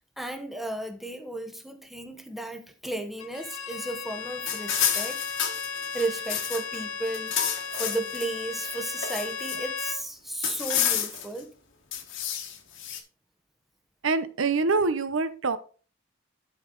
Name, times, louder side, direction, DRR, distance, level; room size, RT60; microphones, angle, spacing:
voice 1, 0.2-5.3 5.9-7.4 7.7-11.5, right 2 dB, ahead, 1.1 m, -34 dB
Bowed string instrument, 3.2-10.0, left 5 dB, 90° left, 1.0 m, -36 dB
sound 1, 4.5-6.8 7.1-8.3 8.7-9.8 10.4-11.4 11.9-13.0, left 9 dB, 65° left, 1.4 m, -30 dB
voice 2, 14.0-15.6, right 4 dB, 70° right, 0.8 m, -25 dB
12.0 x 5.1 x 3.9 m
head